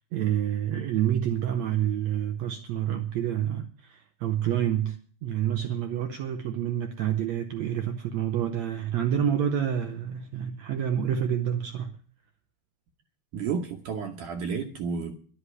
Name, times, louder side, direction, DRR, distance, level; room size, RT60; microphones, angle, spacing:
voice 1, 0.0-12.0, right 10 dB, 85° right, 1.5 m, -28 dB
voice 2, 13.3-15.2, right 6 dB, 65° right, 2.3 m, -31 dB
11.5 x 8.1 x 9.7 m
omnidirectional pair, 4.3 m